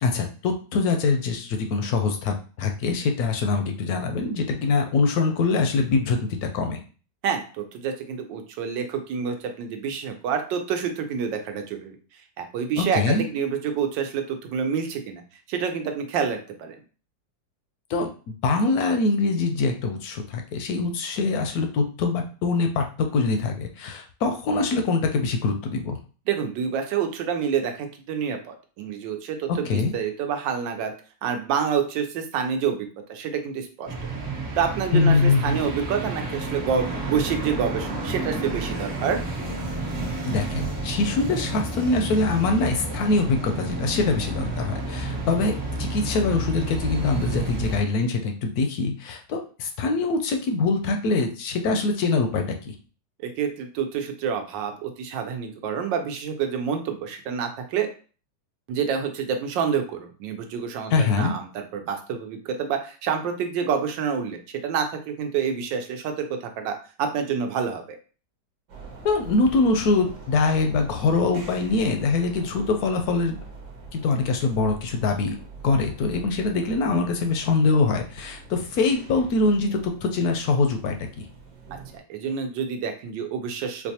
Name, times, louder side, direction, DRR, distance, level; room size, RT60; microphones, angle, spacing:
voice 1, 0.0-6.8 12.8-13.3 17.9-26.0 29.7-29.9 34.9-35.6 40.2-52.8 60.9-61.3 69.0-73.4 73.9-75.4 75.6-81.3, left 3 dB, 70° left, 4 dB, 0.9 m, -23 dB
voice 2, 7.2-12.0 12.4-15.2 15.5-16.8 26.3-30.9 31.2-34.1 34.6-39.2 53.2-57.9 58.7-67.8 81.9-83.9, right 7 dB, 85° right, 5 dB, 1.3 m, -28 dB
sound 1, 33.9-47.8, right 2 dB, 40° right, 1.1 m, -30 dB
sound 2, 68.7-82.0, right 3 dB, 65° right, 1.3 m, -44 dB
4.6 x 2.2 x 2.8 m, 0.38 s
omnidirectional pair, 1.9 m